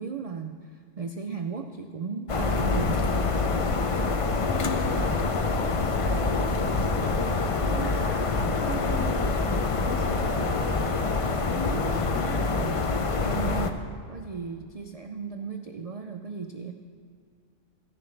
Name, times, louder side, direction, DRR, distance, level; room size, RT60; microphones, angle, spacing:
voice 1, 0.0-3.1 13.0-16.7, right 5 dB, 70° right, 5 dB, 0.3 m, -35 dB
sound 1, 2.3-13.7, left 3 dB, 45° left, 0.4 m, -26 dB
voice 2, 4.4-9.5 9.8-12.5, left 1 dB, 80° left, -4 dB, 1.9 m, -37 dB
15.0 x 10.5 x 3.2 m, 2.2 s
omnidirectional pair, 1.2 m